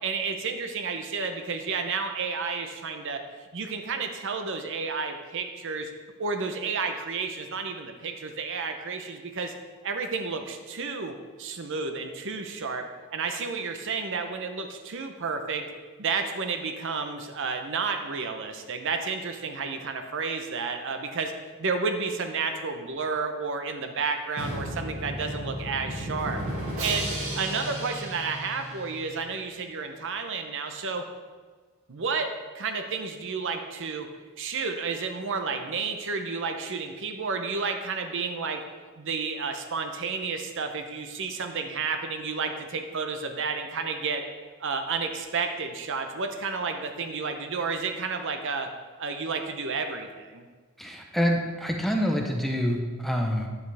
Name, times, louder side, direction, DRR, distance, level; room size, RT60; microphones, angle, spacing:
voice 1, 0.0-3.2 3.5-5.9 6.2-9.5 9.8-15.7 16.0-21.3 21.6-26.4 26.8-27.1 27.3-31.0 31.9-34.1 34.4-38.6 39.0-44.2 44.6-48.7 49.0-50.4, right 4 dB, 60° right, 6 dB, 0.7 m, -31 dB
Drum, 24.4-29.2, right 1 dB, 80° right, 2.1 m, -34 dB
voice 2, 50.8-53.5, equal, ahead, 1 dB, 0.7 m, -26 dB
9.4 x 7.9 x 3.4 m, 1.4 s
head